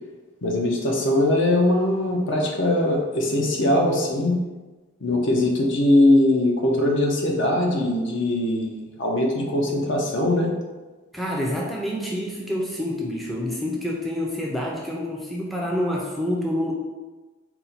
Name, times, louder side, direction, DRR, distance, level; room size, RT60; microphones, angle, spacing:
voice 1, 0.4-4.3 5.0-10.5, left 1 dB, 65° left, 0 dB, 0.7 m, -21 dB
voice 2, 11.1-16.7, left 1 dB, ahead, -3 dB, 0.4 m, -27 dB
4.2 x 2.2 x 4.0 m, 1.2 s
head